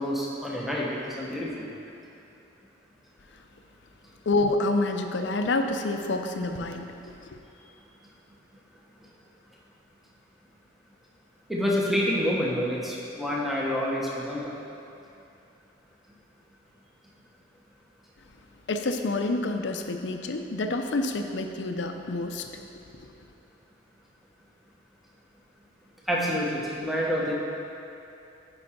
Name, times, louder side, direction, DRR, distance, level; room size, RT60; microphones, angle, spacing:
voice 1, 0.0-1.7 11.5-14.5 26.1-27.4, equal, ahead, -4 dB, 0.9 m, -28 dB
voice 2, 4.3-7.4 18.7-22.5 22.9-23.1, left 2 dB, 70° left, 5 dB, 0.6 m, -28 dB
10.5 x 4.8 x 4.3 m, 2.8 s
head